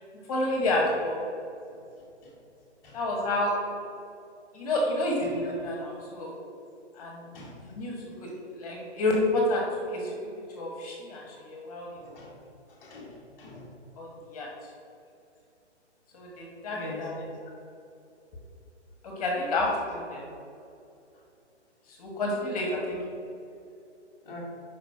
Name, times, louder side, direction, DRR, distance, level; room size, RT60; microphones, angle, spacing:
voice 1, 0.3-1.1 2.9-3.5 4.5-6.3 7.0-7.2 7.7-8.3 8.6-9.6 9.9-10.1 10.5-12.2 14.0-14.5 16.1-17.1 19.0-20.3 22.0-23.0, left 1 dB, 30° left, -1 dB, 1.2 m, -29 dB
voice 2, 12.8-13.6 16.7-17.3 24.2-24.4, left 1 dB, 10° left, -10 dB, 1.1 m, -42 dB
5.8 x 5.1 x 4.7 m, 2.6 s
hypercardioid pair, 160°, 36 cm